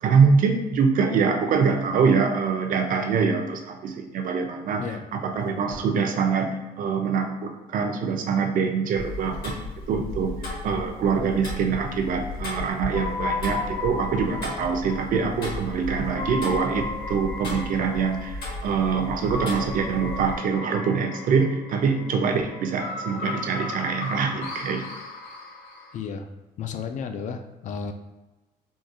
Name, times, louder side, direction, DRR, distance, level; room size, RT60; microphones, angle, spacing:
voice 1, 0.0-6.5 6.8-9.5 9.9-10.3 10.6-24.8, right 5 dB, 55° right, 4 dB, 0.5 m, -24 dB
Tick-tock, 8.9-20.4, left 2 dB, 65° left, 1.3 m, -35 dB
sound 1, 12.9-26.0, left 3 dB, 90° left, 0.6 m, -35 dB
voice 2, 25.9-26.3 26.6-27.9, left 6 dB, 45° left, 6 dB, 0.4 m, -33 dB
3.7 x 2.3 x 2.7 m, 1.1 s
cardioid pair, 110°, 17 cm